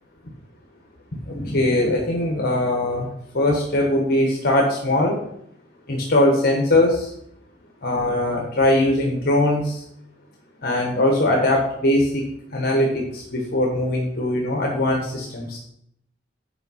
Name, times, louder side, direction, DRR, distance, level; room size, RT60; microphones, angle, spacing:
voice 1, 1.3-3.1 3.3-5.2 5.9-7.1 7.8-9.8 10.6-12.2 12.5-15.6, left 1 dB, 55° left, 0 dB, 1.4 m, -21 dB
9.0 x 4.9 x 5.6 m, 0.73 s
head